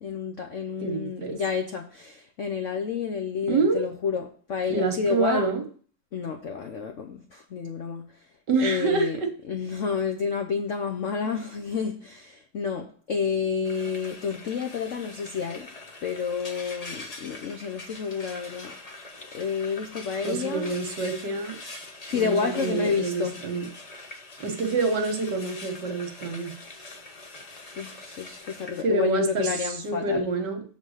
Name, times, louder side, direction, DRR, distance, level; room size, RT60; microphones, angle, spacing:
voice 1, 0.0-5.5 6.1-8.3 8.6-9.2 9.5-15.7 16.0-18.8 19.3-20.8 22.0-23.4 27.8-30.3, left 6 dB, 70° left, 0.7 m, -30 dB
voice 2, 0.8-1.4 3.5-3.9 4.7-5.6 8.5-9.3 20.2-21.6 22.1-23.7 24.4-26.5 28.8-30.6, right 3 dB, 60° right, 1.7 m, -27 dB
Frying (food), 13.6-28.8, left 2 dB, 85° left, 0.3 m, -43 dB
7.3 x 4.0 x 6.3 m
omnidirectional pair, 2.2 m